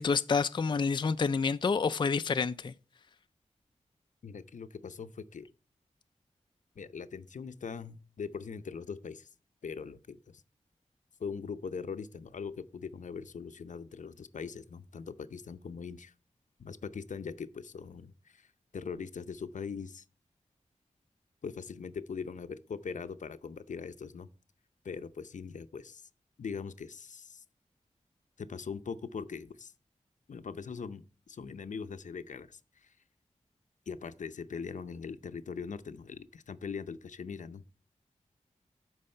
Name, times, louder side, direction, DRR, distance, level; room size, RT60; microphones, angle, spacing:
voice 1, 0.0-2.7, left 5 dB, 40° left, 0.4 m, -28 dB
voice 2, 4.2-5.5 6.8-9.3 9.6-10.4 11.2-16.1 16.6-18.5 18.7-20.0 21.4-24.3 24.8-26.1 26.4-27.4 28.4-29.7 30.3-32.9 33.9-37.6, left 5 dB, 85° left, 0.6 m, -41 dB
12.0 x 4.8 x 4.3 m
wide cardioid pair, 90°, 13 cm